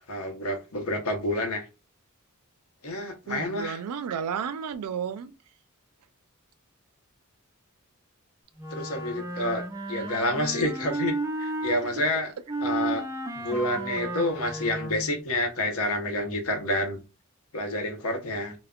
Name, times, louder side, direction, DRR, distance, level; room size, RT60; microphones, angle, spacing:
voice 1, 0.1-1.7 2.8-3.8 8.7-12.3 12.6-13.0 13.3-17.0 17.5-18.5, left 1 dB, 70° left, 0.7 m, -29 dB
voice 2, 3.3-5.3 11.8-12.0, right 7 dB, 85° right, 0.4 m, -32 dB
Wind instrument woodwind instrument, 8.6-11.8 12.5-15.2, right 2 dB, 15° right, 0.3 m, -33 dB
2.1 x 2.1 x 3.6 m
head